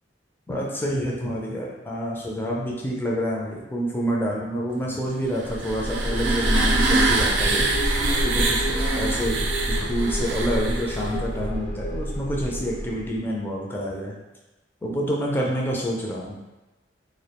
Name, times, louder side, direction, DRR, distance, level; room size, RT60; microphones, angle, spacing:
voice 1, 0.5-8.0 8.2-9.4 9.7-14.1 14.8-16.4, equal, 10° left, -3 dB, 0.3 m, -28 dB
sound 1, 5.3-11.2, right 2 dB, 75° right, 0.4 m, -24 dB
sound 2, 5.4-13.2, equal, 60° left, 0.6 m, -29 dB
2.3 x 2.1 x 2.8 m, 1.1 s
head